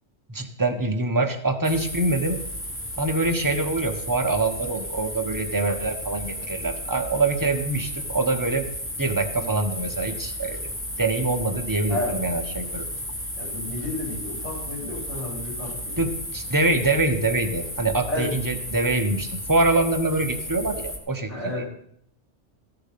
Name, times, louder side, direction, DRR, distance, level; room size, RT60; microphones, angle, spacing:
voice 1, 0.3-2.4 3.0-8.7 9.0-10.6 11.0-12.8 16.0-21.3, right 2 dB, 20° right, 5 dB, 1.0 m, -24 dB
sound 1, 1.6-21.0, equal, 10° left, 1.2 m, -34 dB
voice 2, 13.4-16.1 18.1-18.3 21.3-21.6, left 1 dB, 70° left, -5 dB, 5.7 m, -31 dB
13.5 x 6.8 x 5.9 m, 0.66 s
omnidirectional pair, 1.3 m